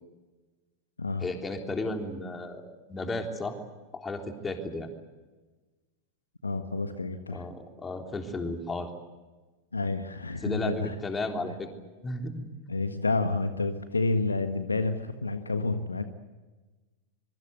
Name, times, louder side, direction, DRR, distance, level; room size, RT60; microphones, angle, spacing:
voice 1, 1.2-3.6 3.9-4.9 7.3-8.9 10.4-11.7 12.0-12.4, left 2 dB, 15° left, 4 dB, 3.5 m, -34 dB
voice 2, 6.4-7.4 9.7-10.9 12.7-16.0, left 3 dB, 80° left, 9 dB, 1.5 m, -29 dB
25.0 x 23.0 x 8.1 m, 1.2 s
figure-of-eight pair, 90°, 0 cm